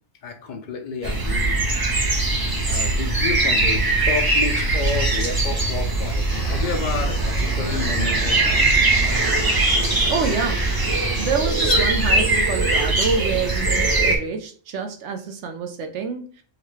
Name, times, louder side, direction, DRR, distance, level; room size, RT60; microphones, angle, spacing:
voice 1, 0.2-1.6 2.7-8.8, left 5 dB, 70° left, 4 dB, 0.4 m, -30 dB
sound 1, 1.0-14.2, right 2 dB, 30° right, 0.4 m, -21 dB
sound 2, 6.3-11.3, equal, 50° left, 1.1 m, -32 dB
voice 2, 10.1-10.6 11.2-16.4, right 5 dB, 70° right, 6 dB, 0.9 m, -27 dB
sound 3, 11.0-12.7, left 5 dB, 85° left, 1.0 m, -34 dB
3.9 x 2.2 x 3.1 m, 0.43 s
omnidirectional pair, 1.3 m